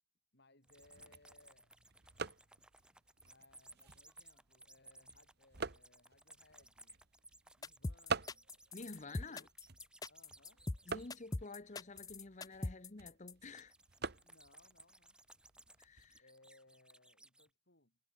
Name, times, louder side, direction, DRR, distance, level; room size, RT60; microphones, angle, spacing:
voice 1, 0.3-1.7 3.2-7.0 7.6-8.5 9.2-9.5 10.1-10.6 14.2-15.2 16.2-18.0, left 2 dB, 50° left, 7.0 m, -67 dB
sound 1, 0.6-12.0 13.5-17.5, right 2 dB, 5° right, 1.4 m, -61 dB
Wooden box lid opening and closing, 0.7-16.2, right 4 dB, 50° right, 1.6 m, -48 dB
sound 2, 7.6-13.3, left 2 dB, 15° left, 0.5 m, -41 dB
voice 2, 8.7-9.5 10.9-13.7 15.8-16.2, left 3 dB, 35° left, 1.0 m, -50 dB
head